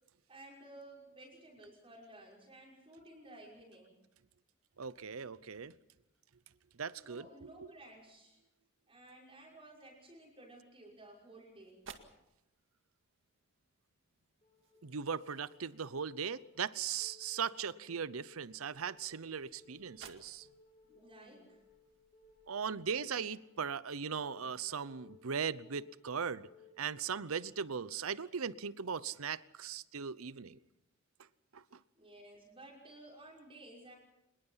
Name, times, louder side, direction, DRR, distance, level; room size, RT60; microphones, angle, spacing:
voice 1, 0.3-3.9 7.0-8.4 8.9-11.8 20.9-21.6 32.0-33.9, right 1 dB, 25° right, 5.8 m, -55 dB
voice 2, 4.8-5.7 6.8-7.7 14.8-20.5 22.5-26.5 26.8-30.6 31.5-31.8, right 6 dB, 90° right, 0.8 m, -39 dB
sound 1, 10.9-23.4, right 6 dB, 65° right, 2.1 m, -61 dB
sound 2, 14.4-27.4, left 3 dB, 25° left, 5.6 m, -64 dB
26.0 x 21.0 x 5.7 m
head